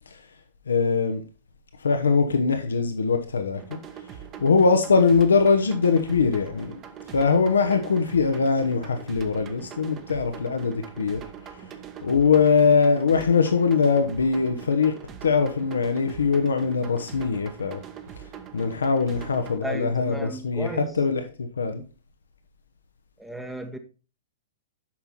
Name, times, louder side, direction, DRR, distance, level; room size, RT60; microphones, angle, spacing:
voice 1, 0.7-1.2 1.8-3.8 4.4-6.8 7.1-11.2 12.0-14.9 15.2-17.8 18.5-21.2 21.6-21.8, left 5 dB, 70° left, 0.9 m, -22 dB
sound 1, 3.6-19.6, right 8 dB, 25° right, 1.1 m, -42 dB
voice 2, 19.6-21.0 23.2-23.8, right 1 dB, 5° right, 1.0 m, -35 dB
8.7 x 5.8 x 4.2 m
figure-of-eight pair, 105°, 0 cm